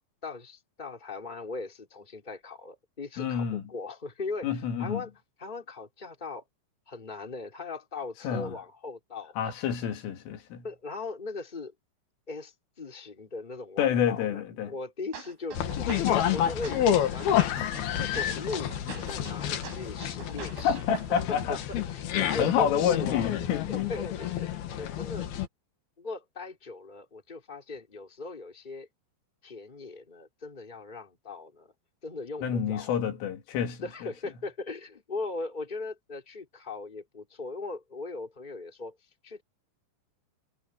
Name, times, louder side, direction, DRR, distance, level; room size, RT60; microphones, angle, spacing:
voice 1, 0.0-5.1 5.4-6.4 6.9-9.3 10.6-11.7 12.3-17.4 18.0-21.2 21.5-23.3 23.7-24.5 24.8-25.3 26.0-28.9 29.4-31.7 32.0-32.9 33.8-38.9 39.2-39.4, left 3 dB, 10° left, 3.4 m, -39 dB
voice 2, 3.2-3.6 4.4-5.0 8.2-8.5 9.4-10.7 13.8-14.7 19.5-19.6 20.6-21.6 22.4-23.8 32.4-33.8, left 8 dB, 80° left, 4.9 m, -28 dB
sound 1, 15.1-21.1, right 4 dB, 80° right, 9.6 m, -45 dB
sound 2, 15.5-25.5, left 10 dB, 60° left, 3.1 m, -29 dB
omnidirectional pair, 5.7 m